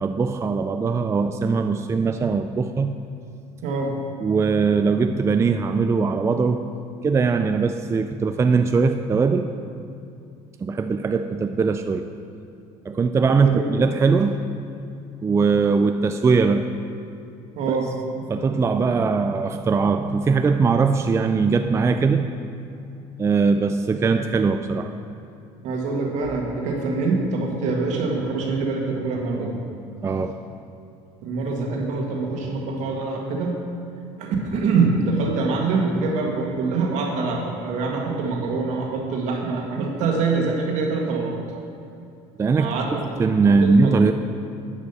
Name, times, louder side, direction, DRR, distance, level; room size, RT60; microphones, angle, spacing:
voice 1, 0.0-2.9 4.2-6.7 7.0-9.5 10.6-12.1 12.9-14.4 15.2-16.7 17.7-17.8 18.3-22.4 23.2-24.9 30.0-30.4 42.4-42.7 43.2-44.1, right 4 dB, 20° right, 8 dB, 0.4 m, -20 dB
voice 2, 3.6-4.0 13.3-13.7 17.6-17.9 25.6-29.6 31.2-33.5 34.2-41.4 42.6-43.0 43.4-43.9, right 4 dB, 70° right, 0 dB, 1.8 m, -24 dB
11.0 x 5.2 x 6.8 m, 2.5 s
supercardioid pair, 100°, 13 cm